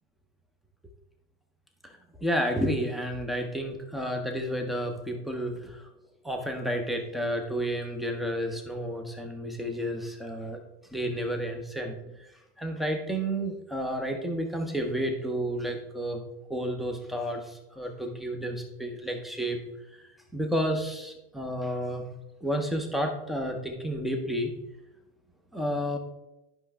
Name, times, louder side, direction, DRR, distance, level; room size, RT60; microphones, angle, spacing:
voice 1, 1.8-5.9 6.2-10.6 10.9-16.2 16.5-19.6 19.9-22.1 22.4-24.5 25.5-26.0, equal, ahead, 3 dB, 0.3 m, -31 dB
10.5 x 5.2 x 3.3 m, 0.96 s
hypercardioid pair, 115°, 49 cm